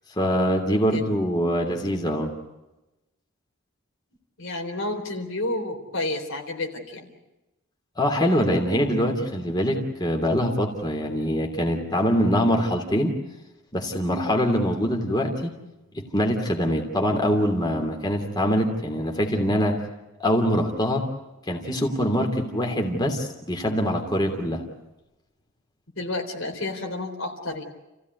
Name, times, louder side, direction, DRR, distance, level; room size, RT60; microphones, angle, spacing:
voice 1, 0.2-2.3 8.0-13.1 13.7-15.5 15.9-19.8 20.2-21.0 21.5-24.6, equal, 20° left, 2 dB, 3.0 m, -24 dB
voice 2, 0.9-1.2 4.4-7.1 26.0-27.6, left 2 dB, 75° left, 3 dB, 4.0 m, -30 dB
30.0 x 16.0 x 9.5 m, 1.0 s
head